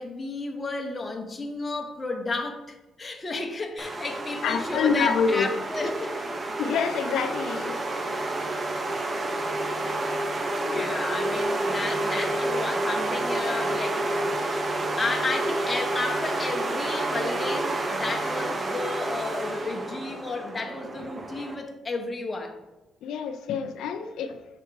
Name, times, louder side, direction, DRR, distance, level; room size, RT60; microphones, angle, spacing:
voice 1, 0.0-6.3 10.5-14.5 15.0-22.6, left 3 dB, 25° left, 0.9 m, -32 dB
sound 1, 3.8-21.6, right 2 dB, 30° right, 0.7 m, -29 dB
voice 2, 4.4-5.5 6.6-8.0 10.6-10.9 23.0-24.4, left 6 dB, 80° left, 0.5 m, -27 dB
6.0 x 3.6 x 4.6 m
cardioid pair, 90°, 0 cm